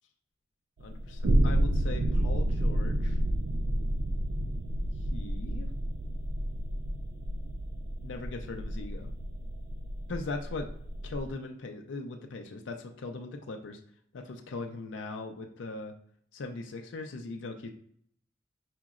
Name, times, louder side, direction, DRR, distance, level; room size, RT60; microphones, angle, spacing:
voice 1, 0.8-3.2 5.1-5.7 8.0-9.1 10.1-10.7 11.0-13.8 14.1-15.9 16.3-17.7, left 3 dB, 85° left, 4 dB, 0.4 m, -39 dB
sound 1, 0.8-11.3, right 1 dB, 55° right, 0.3 m, -30 dB
5.0 x 2.9 x 2.4 m, 0.64 s
head